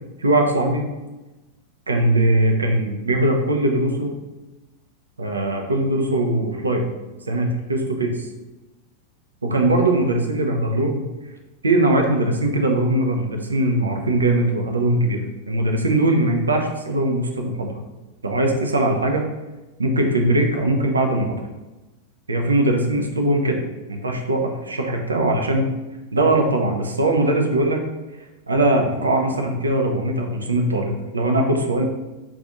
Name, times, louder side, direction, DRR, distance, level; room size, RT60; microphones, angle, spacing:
voice 1, 0.2-0.8 1.9-4.2 5.2-6.9 7.3-8.3 9.4-11.1 11.6-15.2 15.5-17.7 18.2-19.2 19.8-21.4 22.3-23.6 23.9-25.7 26.1-27.8 28.5-31.8, right 1 dB, 75° right, 2 dB, 0.4 m, -20 dB
2.5 x 2.3 x 3.8 m, 1.1 s
figure-of-eight pair, 90°, 0 cm